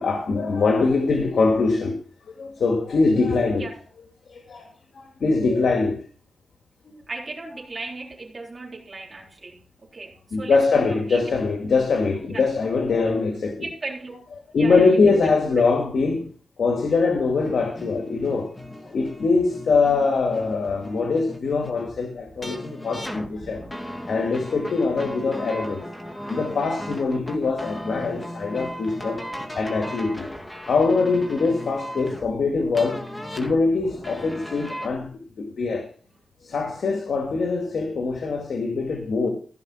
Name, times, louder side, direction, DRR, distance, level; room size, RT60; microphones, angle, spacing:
voice 1, 0.0-2.0 2.3-3.7 4.3-6.0 6.8-7.0 10.3-13.7 14.5-16.3 16.6-18.5 18.8-23.6 24.1-25.8 26.3-29.2 29.5-30.3 30.6-33.0 33.3-35.1 35.4-35.9 36.4-39.3, left 4 dB, 85° left, 2.1 m, -23 dB
voice 2, 7.1-11.2 12.3-12.5 13.6-14.3 14.5-15.6, right 3 dB, 45° right, 3.9 m, -37 dB
sound 1, 17.4-34.9, equal, 15° left, 2.6 m, -37 dB
16.0 x 5.9 x 6.1 m
wide cardioid pair, 90°, 0 cm